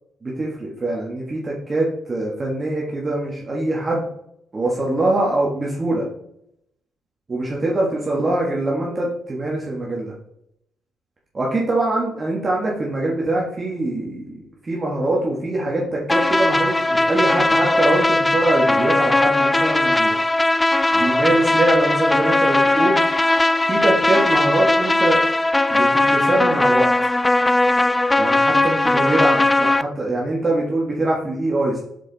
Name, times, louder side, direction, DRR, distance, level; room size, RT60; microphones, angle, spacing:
voice 1, 0.2-4.1 4.5-6.1 7.3-10.1 11.3-14.4 14.6-20.2 20.9-23.0 23.6-25.2 25.7-26.9 28.2-31.8, right 2 dB, 30° right, -3 dB, 1.5 m, -23 dB
sound 1, 16.1-29.8, left 2 dB, 15° left, 0.3 m, -18 dB
6.7 x 4.8 x 4.0 m, 0.75 s
cardioid pair, 90°, 0 cm